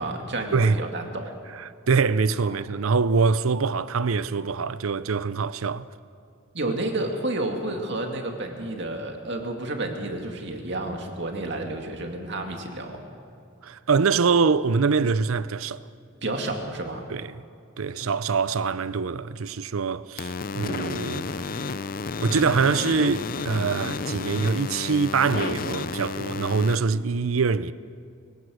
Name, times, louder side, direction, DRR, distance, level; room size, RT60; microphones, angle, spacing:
voice 1, 0.0-1.4 2.5-2.6 6.5-13.0 16.2-17.0 18.0-18.1, right 2 dB, 55° right, 2.3 m, -30 dB
voice 2, 0.5-0.8 1.5-5.9 13.6-15.8 17.1-17.4 17.8-21.3 22.2-27.7, right 5 dB, 85° right, 0.6 m, -24 dB
sound 1, 20.2-26.8, left 4 dB, 45° left, 0.5 m, -31 dB
23.0 x 17.5 x 6.4 m
head